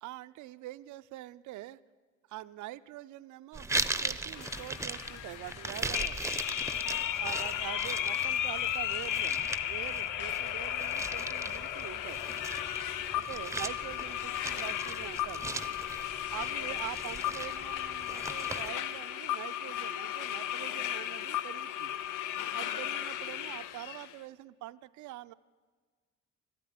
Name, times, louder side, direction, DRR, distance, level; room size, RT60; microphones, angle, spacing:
voice 1, 0.0-1.8 2.3-6.4 6.8-12.6 13.1-15.8 16.3-22.0 22.5-25.3, right 15 dB, 75° right, 16 dB, 0.5 m, -45 dB
sound 1, 3.5-18.7, right 3 dB, 10° right, 0.6 m, -39 dB
sound 2, 4.4-24.1, left 11 dB, 90° left, 0.6 m, -35 dB
13.0 x 9.6 x 9.9 m, 1.5 s
cardioid pair, 90°, 30 cm